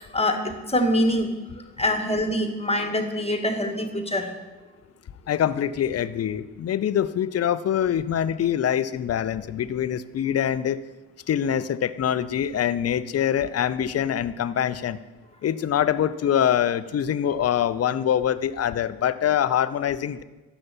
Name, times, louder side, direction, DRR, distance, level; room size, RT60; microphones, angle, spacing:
voice 1, 0.0-1.3 1.8-4.3, left 1 dB, 15° left, 6 dB, 1.7 m, -24 dB
voice 2, 5.3-10.8 11.3-15.0 15.4-20.2, left 9 dB, 35° left, 15 dB, 0.6 m, -24 dB
12.5 x 8.7 x 4.4 m, 1.1 s
hypercardioid pair, 40°, 46 cm